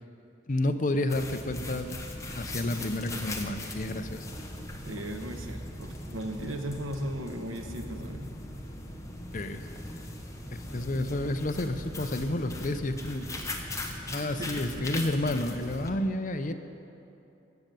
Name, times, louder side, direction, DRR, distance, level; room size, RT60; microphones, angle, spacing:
voice 1, 0.5-1.9 2.3-4.3 9.3-9.8 10.5-13.4 14.1-16.5, left 1 dB, 40° left, 8 dB, 0.6 m, -30 dB
sound 1, 1.1-15.9, left 1 dB, 15° left, 0.9 m, -39 dB
voice 2, 4.9-8.3 10.7-10.9 14.1-14.9, right 1 dB, 85° right, 5 dB, 1.2 m, -37 dB
15.0 x 6.8 x 9.1 m, 2.9 s
head